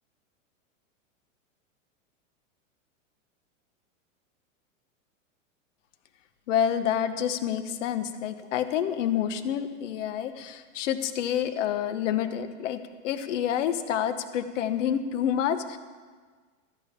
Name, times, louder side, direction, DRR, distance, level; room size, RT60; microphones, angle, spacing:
voice 1, 6.5-15.8, left 9 dB, 65° left, 10 dB, 1.0 m, -28 dB
13.5 x 5.6 x 8.4 m, 1.5 s
hypercardioid pair, 125°, 39 cm